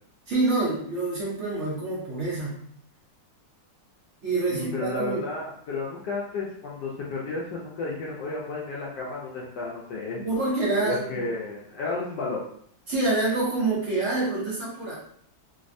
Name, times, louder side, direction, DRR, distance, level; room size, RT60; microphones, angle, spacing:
voice 1, 0.3-2.6 4.2-5.2 10.2-11.2 12.9-15.0, right 3 dB, 55° right, -6 dB, 0.9 m, -26 dB
voice 2, 4.5-10.2 10.8-12.4, left 3 dB, 75° left, -4 dB, 1.2 m, -32 dB
3.3 x 2.1 x 2.5 m, 0.65 s
omnidirectional pair, 1.9 m